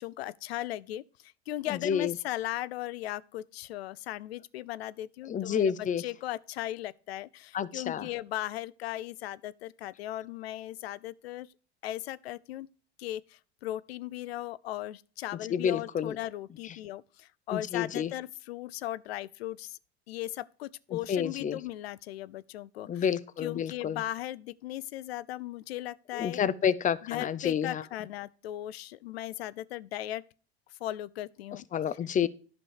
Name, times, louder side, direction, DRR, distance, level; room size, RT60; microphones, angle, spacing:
voice 1, 0.0-11.5 11.8-12.7 13.0-19.8 20.1-23.1 23.4-26.4 27.0-30.2 30.8-31.6, left 14 dB, 75° left, 0.5 m, -37 dB
voice 2, 1.7-2.1 5.3-6.0 7.5-8.1 15.5-16.2 17.5-18.1 20.9-21.6 22.9-24.0 26.1-27.8 31.7-32.3, left 8 dB, 25° left, 0.6 m, -29 dB
11.0 x 5.3 x 4.6 m
hypercardioid pair, 80°, 32 cm